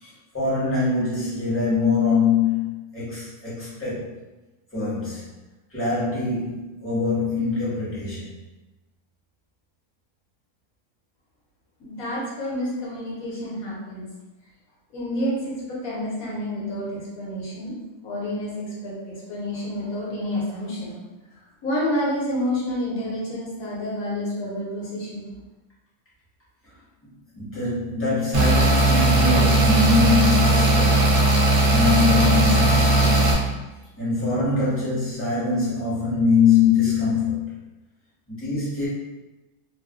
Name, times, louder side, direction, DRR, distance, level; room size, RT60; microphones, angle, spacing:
voice 1, 0.0-4.1 4.7-5.3 5.7-8.3 27.3-31.3 31.7-33.5 34.0-37.5 38.3-38.9, left 4 dB, 10° left, -10 dB, 0.9 m, -23 dB
voice 2, 11.8-14.1 14.9-17.7 18.0-18.5 18.8-21.0 21.6-25.3, left 1 dB, 65° left, -6 dB, 1.3 m, -29 dB
sound 1, 28.3-33.3, right 2 dB, 60° right, 0.6 m, -18 dB
3.1 x 2.3 x 2.3 m, 1.1 s
omnidirectional pair, 1.7 m